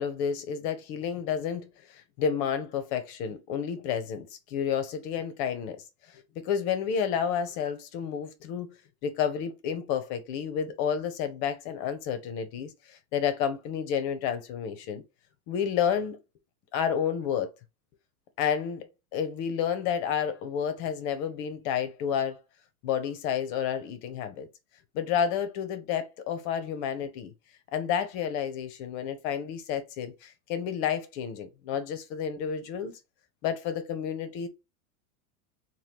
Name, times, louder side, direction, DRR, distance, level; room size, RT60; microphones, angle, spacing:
voice 1, 0.0-5.8 6.4-8.7 9.0-15.0 15.5-16.2 16.7-17.5 18.4-18.9 19.1-22.4 22.8-24.5 24.9-27.3 27.7-32.9 33.4-34.5, left 8 dB, 45° left, 0.7 m, -30 dB
2.8 x 2.2 x 3.4 m
hypercardioid pair, 115°, 44 cm